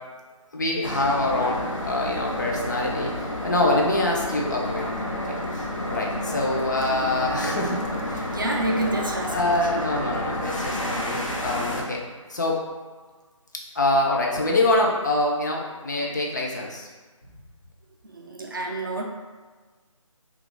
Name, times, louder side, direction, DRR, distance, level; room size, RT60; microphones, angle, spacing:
voice 1, 0.5-3.1 3.4-8.3 9.3-12.0 12.3-12.6 13.7-16.9, left 2 dB, 35° left, -1 dB, 0.5 m, -25 dB
sound 1, 0.8-11.8, left 1 dB, 70° left, 0.8 m, -30 dB
voice 2, 8.2-9.7 18.0-19.0, right 1 dB, 40° right, 0 dB, 0.4 m, -28 dB
2.7 x 2.3 x 3.7 m, 1.4 s
figure-of-eight pair, 160°, 17 cm